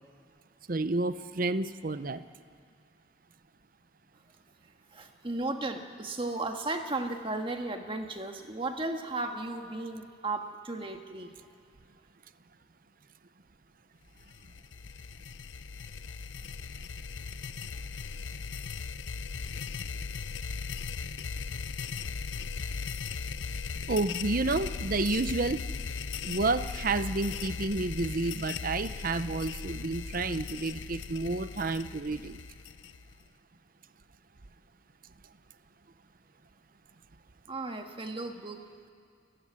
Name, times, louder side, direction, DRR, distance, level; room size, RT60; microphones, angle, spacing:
voice 1, 0.7-2.2 23.9-25.6 26.2-32.4, right 3 dB, 45° right, 13 dB, 0.7 m, -30 dB
voice 2, 4.9-11.3 37.5-38.7, right 2 dB, 25° right, 4 dB, 1.7 m, -35 dB
sound 1, 14.2-33.3, left 5 dB, 65° left, 0.6 m, -38 dB
28.5 x 16.0 x 9.8 m, 2.3 s
head